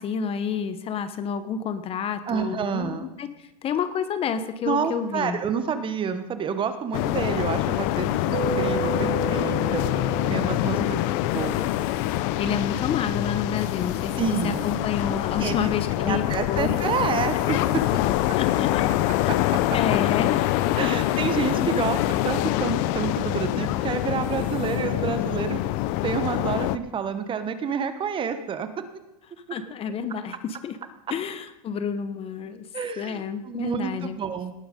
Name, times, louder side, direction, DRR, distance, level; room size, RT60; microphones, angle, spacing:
voice 1, 0.0-5.4 10.7-11.0 12.4-16.8 18.4-18.9 19.7-20.5 20.8-21.0 21.8-21.9 29.5-30.8 31.1-32.7 33.0-34.2, left 7 dB, 30° left, 11 dB, 1.0 m, -29 dB
voice 2, 2.3-3.1 4.6-9.8 10.3-11.0 11.3-11.7 14.2-15.6 16.0-18.0 19.3-19.6 20.8-25.6 26.0-28.8 32.7-34.5, right 6 dB, 25° right, 10 dB, 1.1 m, -29 dB
sound 1, 6.9-26.8, left 15 dB, 55° left, 0.7 m, -25 dB
Mallet percussion, 8.3-11.8, right 7 dB, 75° right, 1.4 m, -33 dB
sound 2, 11.3-12.3 13.4-14.8 16.1-16.2 16.6-22.8 23.5-23.6 24.0-24.8, right 8 dB, 45° right, 4.0 m, -51 dB
18.5 x 8.8 x 5.2 m, 0.88 s
supercardioid pair, 125°, 20 cm